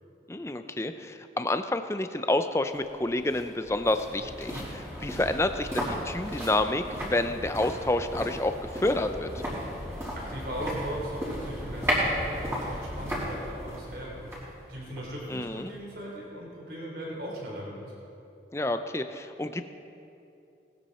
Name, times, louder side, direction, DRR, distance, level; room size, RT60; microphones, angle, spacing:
voice 1, 0.3-9.3 15.3-15.7 18.5-19.7, left 2 dB, 15° left, 9 dB, 0.5 m, -29 dB
sound 1, 2.7-15.8 16.1-16.2, equal, 15° right, 3.7 m, -35 dB
voice 2, 10.1-14.2 14.7-17.9, equal, 65° right, -3 dB, 4.1 m, -38 dB
19.0 x 13.5 x 4.3 m, 2.7 s
head